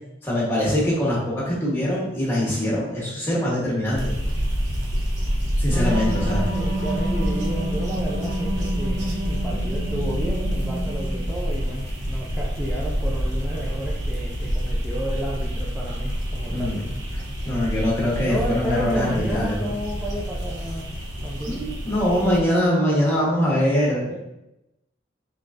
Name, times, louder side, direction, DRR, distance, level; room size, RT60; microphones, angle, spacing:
voice 1, 0.2-4.1 5.6-6.5 16.5-16.9 17.1-19.7 21.5-24.1, left 1 dB, 10° left, -6 dB, 1.1 m, -23 dB
sound 1, 3.8-21.4, left 1 dB, 65° left, 0.5 m, -39 dB
sound 2, 4.0-22.4, equal, 65° right, 0.8 m, -28 dB
sound 3, 5.7-11.3, right 1 dB, 25° right, 1.1 m, -29 dB
voice 2, 6.0-16.7 18.2-20.9 21.2-21.6 24.0-24.2, equal, 5° right, -6 dB, 0.4 m, -32 dB
3.6 x 3.2 x 2.5 m, 0.89 s
head